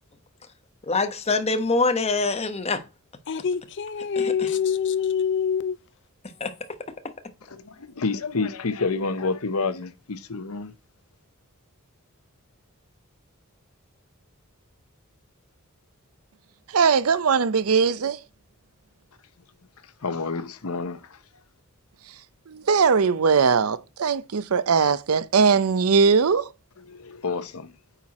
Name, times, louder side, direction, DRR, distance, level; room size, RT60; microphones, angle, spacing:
voice 1, 0.8-2.8 6.4-6.5, left 3 dB, 30° left, 1.0 m, -24 dB
voice 2, 3.3-5.8, left 7 dB, 55° left, 0.5 m, -25 dB
voice 3, 7.5-10.7 20.0-21.2 26.9-27.7, left 4 dB, 80° left, 0.8 m, -29 dB
voice 4, 16.7-18.2 22.5-26.5, right 5 dB, 80° right, 0.6 m, -20 dB
9.1 x 4.5 x 4.2 m
head